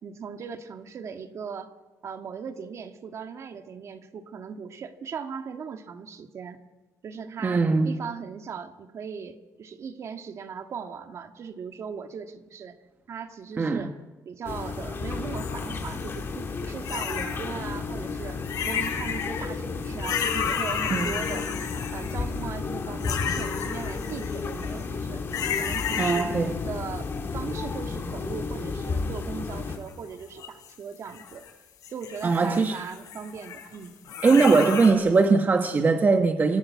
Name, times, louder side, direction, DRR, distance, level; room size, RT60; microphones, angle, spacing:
voice 1, 0.0-1.7 2.0-6.6 7.0-12.8 13.1-13.9 14.2-18.4 18.6-21.5 21.9-25.2 25.6-26.3 26.6-31.5 31.9-33.9, right 6 dB, 50° right, 1.7 m, -38 dB
voice 2, 7.4-7.9 13.6-13.9 20.9-21.1 26.0-26.5 32.2-32.8 34.2-36.6, right 4 dB, 30° right, 1.2 m, -21 dB
sound 1, 14.4-29.8, left 4 dB, 40° left, 2.7 m, -33 dB
sound 2, 15.4-16.2 16.8-17.5 18.4-19.4 19.8-22.4 23.0-24.8 25.3-26.6 26.9-27.9 28.8-29.9 30.4-31.5 31.8-34.9, left 7 dB, 70° left, 4.8 m, -33 dB
26.0 x 16.5 x 8.3 m
cardioid pair, 125°, 6 cm